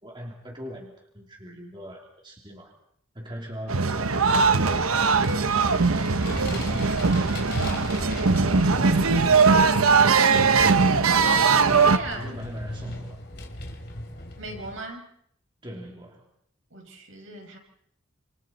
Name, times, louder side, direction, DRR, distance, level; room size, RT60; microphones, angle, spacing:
voice 1, 0.0-2.7 3.1-5.7 6.4-9.7 10.2-11.0 12.1-13.2 15.6-16.3, equal, 20° right, -1 dB, 2.9 m, -41 dB
sound 1, 3.7-12.0, right 4 dB, 90° right, 1.1 m, -20 dB
Vehicle, 3.9-14.8, left 1 dB, 50° left, 3.2 m, -37 dB
voice 2, 11.5-12.4 14.4-15.1 16.7-17.6, right 2 dB, 65° right, 1 dB, 5.8 m, -38 dB
28.5 x 27.0 x 4.3 m, 0.68 s
head